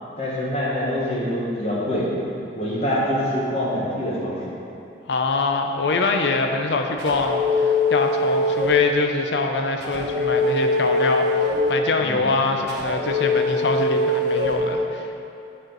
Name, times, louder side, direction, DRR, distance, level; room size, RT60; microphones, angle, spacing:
voice 1, 0.2-2.1 2.5-4.5 12.0-12.3, equal, 35° left, -6 dB, 1.3 m, -25 dB
voice 2, 5.1-15.2, left 3 dB, 70° left, 4 dB, 0.5 m, -24 dB
sound 1, 7.0-8.9 9.8-11.8 12.7-14.6, left 2 dB, 65° right, 1.2 m, -22 dB
9.1 x 4.4 x 3.9 m, 2.8 s
head